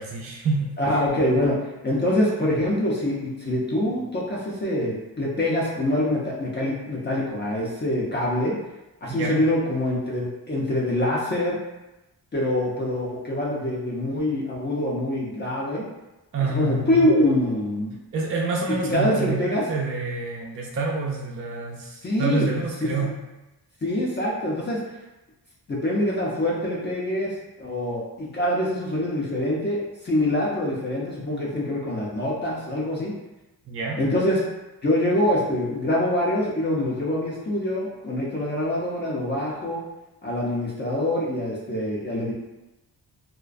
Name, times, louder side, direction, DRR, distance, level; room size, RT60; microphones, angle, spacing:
voice 1, 0.0-0.8 9.1-9.4 16.3-17.0 18.1-23.2 33.7-34.0, right 4 dB, 35° right, -3 dB, 0.4 m, -27 dB
voice 2, 0.8-1.6 1.8-8.5 9.0-11.6 12.3-15.8 16.5-17.9 18.8-19.6 22.0-22.5 22.8-22.9 23.8-24.8 25.7-33.1 34.0-34.4 34.8-39.8 40.2-42.3, left 1 dB, 25° left, -5 dB, 0.4 m, -25 dB
2.4 x 2.1 x 2.4 m, 1.0 s
cardioid pair, 100°, 41 cm